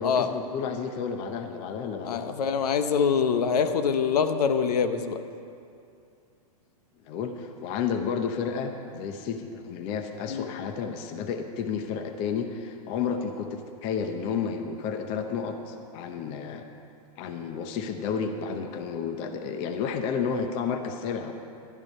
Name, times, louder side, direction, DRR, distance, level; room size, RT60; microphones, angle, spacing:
voice 1, 0.0-2.2 7.1-16.7 17.2-21.3, left 6 dB, 30° left, 6 dB, 0.7 m, -31 dB
voice 2, 2.0-5.2 10.3-10.5, left 6 dB, 80° left, 9 dB, 0.9 m, -24 dB
12.0 x 11.0 x 5.4 m, 2.5 s
supercardioid pair, 160°, 20 cm